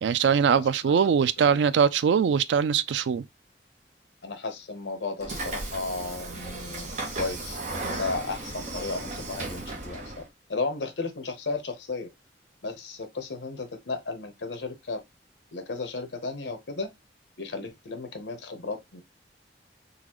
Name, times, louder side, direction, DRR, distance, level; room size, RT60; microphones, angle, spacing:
voice 1, 0.0-3.2, right 7 dB, 85° right, 0.3 m, -22 dB
voice 2, 0.5-0.9 1.4-1.6 4.2-10.2 10.5-12.1 12.6-15.0 15.5-16.9 17.4-19.0, left 3 dB, 85° left, 0.8 m, -34 dB
Train / Sliding door, 5.2-10.3, right 2 dB, 45° right, 0.9 m, -35 dB
4.0 x 2.4 x 2.9 m
head